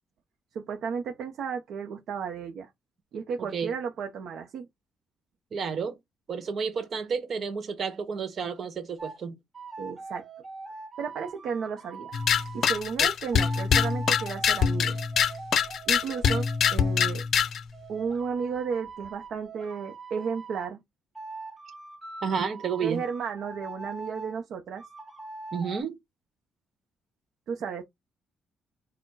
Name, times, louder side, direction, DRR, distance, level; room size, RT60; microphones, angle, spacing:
voice 1, 0.5-2.7 3.1-4.7 9.8-10.2 11.0-12.1 12.5-15.0 15.9-17.2 17.9-20.8 22.4-22.5 22.8-24.8 27.5-27.8, right 6 dB, 70° right, 0.6 m, -33 dB
voice 2, 3.4-3.7 5.5-6.0 6.3-9.3 13.0-13.1 22.2-23.0 25.5-25.9, right 6 dB, 55° right, 1.1 m, -31 dB
sound 1, 9.0-9.2 9.5-12.8 13.3-17.1 17.7-20.7 21.1-24.4 24.8-25.8, right 3 dB, 20° right, 1.1 m, -42 dB
sound 2, 12.1-17.6, left 7 dB, 60° left, 0.5 m, -24 dB
4.3 x 2.2 x 4.5 m
cardioid pair, 90°, 0 cm